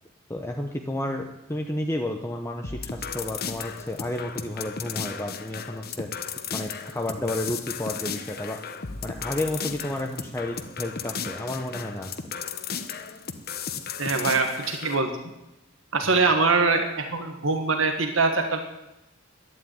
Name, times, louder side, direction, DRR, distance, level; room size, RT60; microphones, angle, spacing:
voice 1, 0.3-8.6 9.0-12.2 16.0-16.2, left 1 dB, 15° left, 3 dB, 0.8 m, -32 dB
sound 1, 2.6-15.0, left 6 dB, 50° left, 1.0 m, -35 dB
voice 2, 14.0-15.1 15.9-18.6, right 3 dB, 75° right, 5 dB, 1.5 m, -23 dB
11.5 x 9.7 x 9.3 m, 0.93 s
head